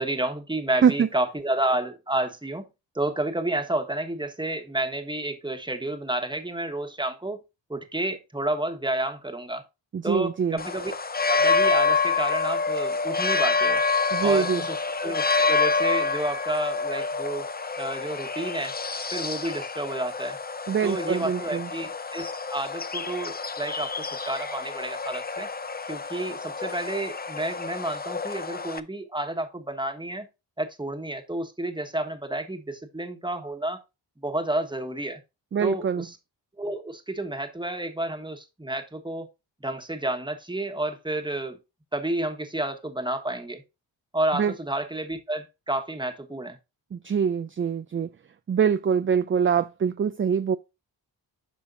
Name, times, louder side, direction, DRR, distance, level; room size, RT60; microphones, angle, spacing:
voice 1, 0.0-2.7 2.9-7.4 7.7-9.6 10.0-10.9 11.3-13.8 14.2-17.5 17.8-18.7 19.1-20.4 20.8-23.9 24.2-25.5 25.9-30.3 30.6-33.8 34.2-35.2 35.6-36.2 36.6-39.3 39.6-41.6 41.9-43.6 44.1-46.6, right 1 dB, 10° right, 1.4 m, -30 dB
voice 2, 9.9-10.6 14.1-14.6 20.7-21.7 35.5-36.1 44.3-44.5 46.9-48.1 48.5-50.6, right 7 dB, 30° right, 0.4 m, -24 dB
sound 1, 10.6-28.8, left 4 dB, 20° left, 0.6 m, -27 dB
9.1 x 5.6 x 2.6 m
cardioid pair, 45°, 46 cm